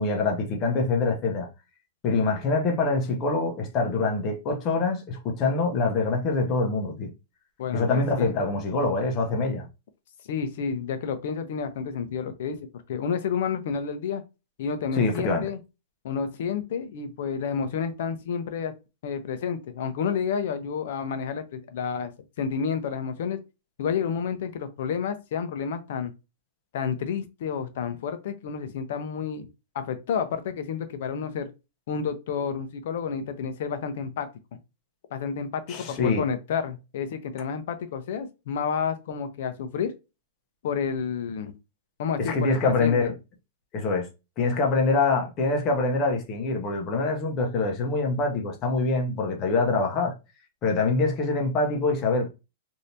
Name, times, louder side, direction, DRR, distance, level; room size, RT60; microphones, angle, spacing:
voice 1, 0.0-1.5 2.0-7.1 7.7-9.7 14.9-15.4 35.7-36.3 42.2-43.1 43.7-44.1 44.4-50.1 50.6-52.3, left 3 dB, 25° left, 0.8 m, -25 dB
voice 2, 7.6-8.3 10.3-12.6 12.9-14.2 14.6-15.6 16.0-18.7 19.0-22.1 22.4-23.4 23.8-26.1 26.7-29.5 29.7-31.5 31.9-34.3 35.1-39.9 40.6-41.5 42.0-43.1, left 6 dB, 55° left, 0.6 m, -30 dB
3.3 x 2.7 x 2.7 m
supercardioid pair, 175°, 0 cm